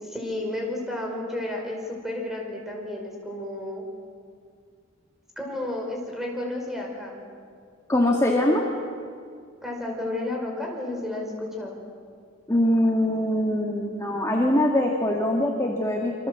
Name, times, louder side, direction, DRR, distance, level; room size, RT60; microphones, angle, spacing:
voice 1, 0.0-3.8 5.4-7.2 9.6-11.7, left 1 dB, ahead, 0 dB, 5.3 m, -32 dB
voice 2, 7.9-8.7 12.5-16.1, left 1 dB, 15° left, -1 dB, 2.0 m, -22 dB
27.5 x 25.0 x 7.8 m, 2.2 s
head